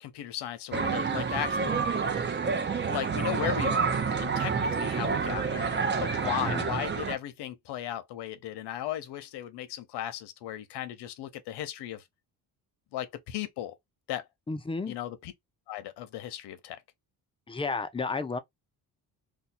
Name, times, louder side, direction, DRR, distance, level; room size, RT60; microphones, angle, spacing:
voice 1, 0.0-1.8 2.9-5.7 6.0-12.0 12.9-13.7 14.1-14.2 14.9-15.3 15.7-16.8, left 12 dB, 80° left, 0.8 m, -36 dB
sound 1, 0.7-7.1, right 5 dB, 25° right, 0.7 m, -28 dB
voice 2, 6.2-6.7 14.5-14.9 17.5-18.4, left 4 dB, 15° left, 0.5 m, -32 dB
2.7 x 2.3 x 4.1 m
cardioid pair, 105°, 40 cm